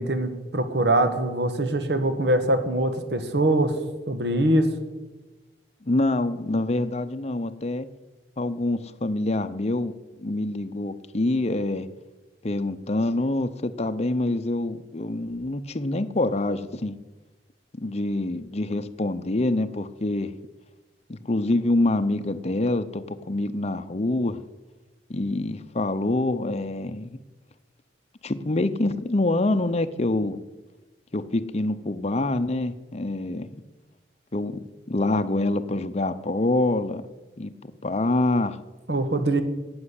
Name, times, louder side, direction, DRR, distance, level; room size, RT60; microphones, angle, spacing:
voice 1, 0.0-3.7 4.1-4.7 38.9-39.4, right 1 dB, 70° right, 9 dB, 1.5 m, -23 dB
voice 2, 5.8-7.9 8.4-9.9 10.2-11.9 12.4-17.0 17.8-20.3 21.1-24.4 25.1-27.1 28.2-30.4 31.1-33.5 34.3-34.5 34.9-37.0 37.4-37.5 37.8-38.6, left 2 dB, 40° left, 9 dB, 0.7 m, -26 dB
11.5 x 8.7 x 8.1 m, 1.2 s
head